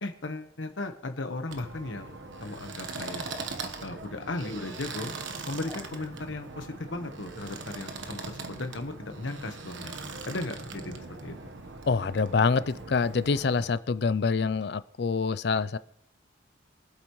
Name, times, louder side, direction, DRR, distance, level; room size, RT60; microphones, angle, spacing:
voice 1, 0.0-3.2 3.8-5.1 5.5-9.9 10.2-11.3, left 2 dB, 85° left, 7 dB, 1.2 m, -36 dB
sound 1, 1.5-13.7, right 3 dB, 80° right, 1.2 m, -40 dB
sound 2, 3.3-3.5 5.6-5.9 6.7-6.8, left 1 dB, 5° right, 1.1 m, -48 dB
voice 2, 11.9-15.8, left 5 dB, 60° left, 16 dB, 0.4 m, -26 dB
24.0 x 8.2 x 3.1 m, 0.68 s
head